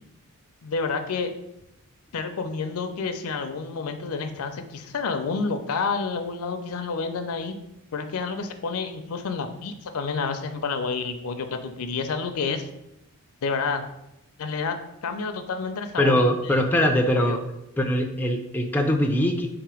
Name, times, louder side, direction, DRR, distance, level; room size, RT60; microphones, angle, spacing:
voice 1, 0.6-1.3 2.1-7.5 7.9-12.7 13.4-13.8 14.4-14.8 15.0-16.6 17.1-17.4, left 4 dB, 75° left, 8 dB, 0.5 m, -29 dB
voice 2, 16.0-17.4 17.8-19.5, left 1 dB, 10° left, 3 dB, 0.3 m, -22 dB
3.7 x 2.9 x 4.8 m, 0.86 s
head